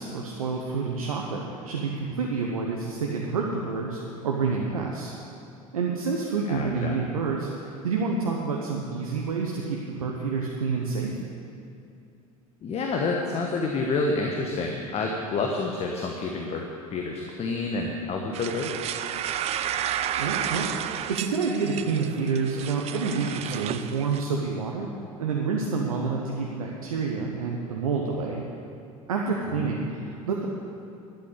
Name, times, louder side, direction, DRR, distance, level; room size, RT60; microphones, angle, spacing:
voice 1, 0.0-5.1 5.7-11.2 20.2-24.9 25.2-28.4 29.1-30.5, right 4 dB, 70° right, -1 dB, 1.0 m, -28 dB
voice 2, 6.5-7.0 12.6-18.9 29.5-29.7, left 3 dB, 35° left, 1 dB, 1.2 m, -29 dB
sound 1, 18.3-24.2, right 10 dB, 35° right, 0.5 m, -32 dB
12.0 x 8.1 x 8.1 m, 2.6 s
figure-of-eight pair, 70°, 19 cm